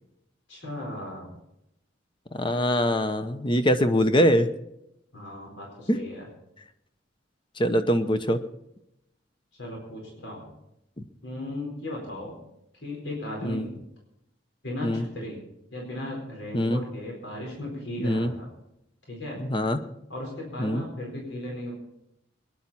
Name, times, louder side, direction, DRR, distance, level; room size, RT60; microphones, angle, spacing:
voice 1, 0.5-1.3 5.1-6.2 9.6-10.5 11.2-12.3 12.8-13.8 14.6-15.4 15.7-18.5 19.1-19.4 20.1-21.7, left 1 dB, 80° left, -1 dB, 4.5 m, -36 dB
voice 2, 2.3-4.5 5.9-6.0 7.6-8.4 13.4-13.7 14.8-15.1 16.5-16.8 18.0-18.3 19.4-19.8 20.6-20.8, equal, 25° left, 9 dB, 0.9 m, -23 dB
22.5 x 10.5 x 4.3 m, 0.82 s
head